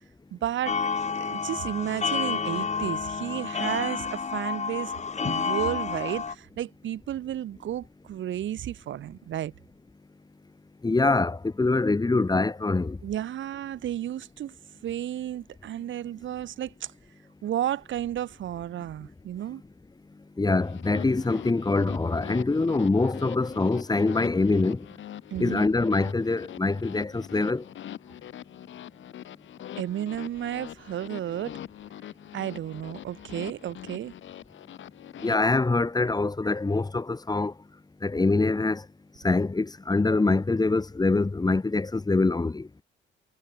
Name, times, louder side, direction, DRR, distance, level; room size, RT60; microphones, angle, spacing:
voice 1, 0.3-0.8 1.2-5.0 5.2-9.5 13.0-14.5 14.8-16.9 17.4-19.6 25.3-25.6 29.8-31.6 32.3-34.1, right 11 dB, 70° right, 3.7 m, -32 dB
sound 1, 0.7-6.3, left 5 dB, 35° left, 2.5 m, -30 dB
voice 2, 10.8-13.0 20.4-24.9 25.4-27.6 35.2-37.5 38.0-38.8 39.2-42.7, left 3 dB, 20° left, 2.0 m, -24 dB
sound 2, 20.6-35.4, left 11 dB, 70° left, 5.8 m, -43 dB
cardioid pair, 90°, 20 cm